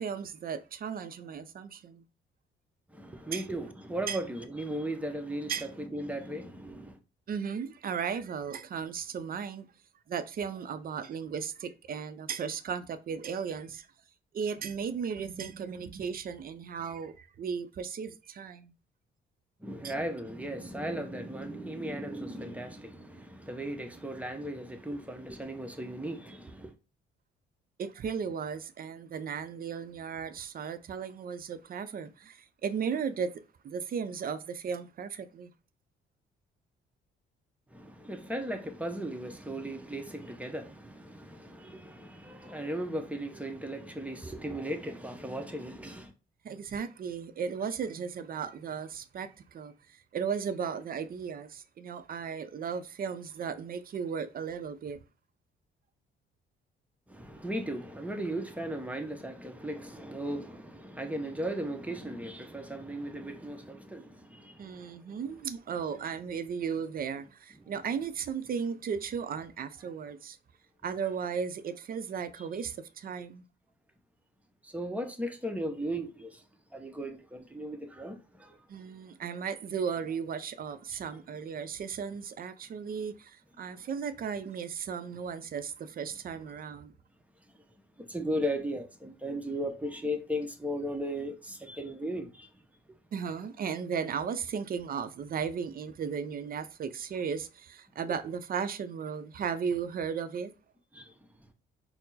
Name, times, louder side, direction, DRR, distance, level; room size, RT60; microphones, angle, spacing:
voice 1, 0.0-2.0 3.3-3.4 4.1-4.2 5.5-5.7 7.3-9.7 10.1-13.9 14.3-18.7 19.8-19.9 27.8-33.3 33.6-35.5 46.4-55.0 64.6-70.4 70.8-73.4 78.7-86.9 93.1-100.5, right 6 dB, 45° right, 0.5 m, -35 dB
voice 2, 2.9-7.0 19.6-26.7 37.7-46.1 57.1-65.2 67.6-67.7 74.6-76.4 76.7-78.6 88.0-92.5 100.9-101.2, right 1 dB, 5° right, 0.7 m, -37 dB
4.3 x 2.0 x 4.0 m
cardioid pair, 90°, 20 cm